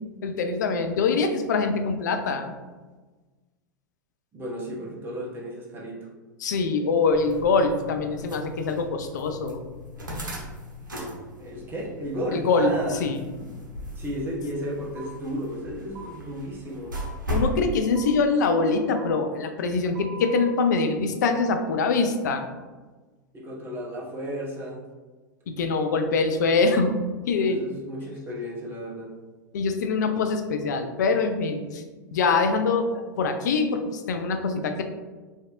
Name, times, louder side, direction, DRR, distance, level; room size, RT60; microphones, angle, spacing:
voice 1, 0.2-2.5 6.4-9.6 12.3-12.7 13.0-13.2 17.3-22.5 25.5-26.9 27.3-27.6 29.5-31.8 32.1-34.8, left 4 dB, 65° left, 6 dB, 0.4 m, -24 dB
voice 2, 4.3-6.1 11.4-13.1 13.9-17.0 23.3-24.8 27.3-29.1, equal, 20° right, -4 dB, 0.9 m, -33 dB
sound 1, 7.1-17.6, equal, 85° right, 0.7 m, -37 dB
sound 2, 15.0-15.1 15.9-16.1 16.9-17.1 17.9-18.1 18.9-19.1 19.9-20.5, right 4 dB, 45° right, 1.2 m, -41 dB
3.2 x 2.6 x 2.4 m, 1.3 s
figure-of-eight pair, 90°, 10 cm